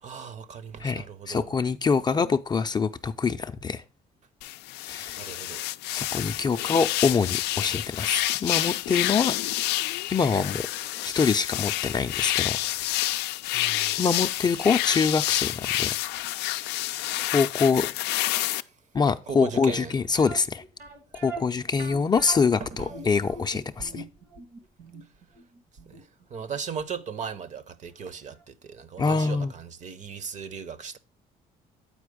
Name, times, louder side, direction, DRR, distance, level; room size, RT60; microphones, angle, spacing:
voice 1, 0.0-1.5 5.2-5.6 13.5-13.9 18.4-18.5 19.3-19.9 21.1-21.2 22.6-22.8 25.9-31.0, right 6 dB, 45° right, 0.7 m, -37 dB
voice 2, 0.8-3.8 4.9-5.2 5.9-9.3 10.1-10.7 11.0-12.6 14.0-16.0 17.3-17.9 18.9-20.6 21.2-24.0 29.0-29.5, left 5 dB, 25° left, 0.4 m, -25 dB
sound 1, 4.4-18.6, left 15 dB, 85° left, 0.4 m, -28 dB
sound 2, 20.2-27.0 27.3-27.4 28.0-28.1 28.4-28.5, right 3 dB, 85° right, 2.2 m, -42 dB
8.5 x 4.5 x 4.9 m
cardioid pair, 110°, 17 cm